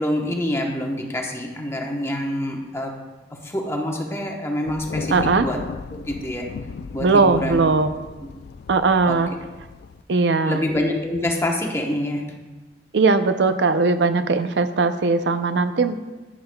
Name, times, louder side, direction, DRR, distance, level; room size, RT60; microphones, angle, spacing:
voice 1, 0.0-2.9 3.4-5.6 5.9-6.5 6.9-7.6 9.1-9.2 10.4-12.2, left 1 dB, 15° left, 1 dB, 1.0 m, -26 dB
Thunder, 4.7-10.0, left 5 dB, 65° left, 0.3 m, -36 dB
voice 2, 5.1-5.5 7.0-7.9 8.7-9.3 10.1-10.6 12.9-15.9, right 4 dB, 80° right, 10 dB, 0.5 m, -19 dB
11.0 x 9.7 x 2.3 m, 1.2 s
head